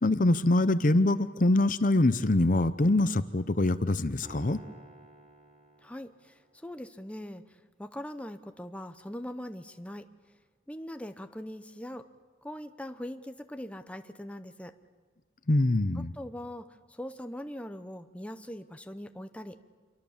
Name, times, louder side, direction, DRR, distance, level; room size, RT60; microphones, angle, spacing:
voice 1, 0.0-4.6 15.5-16.1, left 2 dB, 45° left, 13 dB, 0.8 m, -24 dB
Piano, 4.2-6.6, right 1 dB, 45° right, 3.6 m, -52 dB
voice 2, 5.8-10.1 10.7-12.1 12.4-14.7 15.9-19.6, left 1 dB, 5° left, 8 dB, 0.9 m, -41 dB
26.5 x 24.0 x 7.3 m, 1.5 s
head